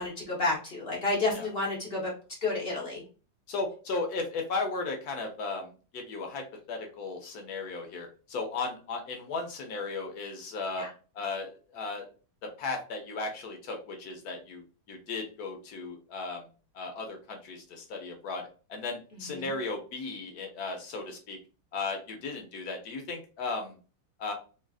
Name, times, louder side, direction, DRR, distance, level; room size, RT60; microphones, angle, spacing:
voice 1, 0.0-2.1 2.4-3.0 10.8-10.9 19.3-19.5, left 3 dB, 45° left, -4 dB, 0.8 m, -30 dB
voice 2, 3.5-6.4 6.7-10.9 11.1-12.1 12.6-14.6 14.9-16.4 16.7-21.4 21.7-23.8 24.2-24.3, left 3 dB, 70° left, 3 dB, 1.0 m, -36 dB
3.1 x 2.3 x 2.3 m, 0.36 s
omnidirectional pair, 2.0 m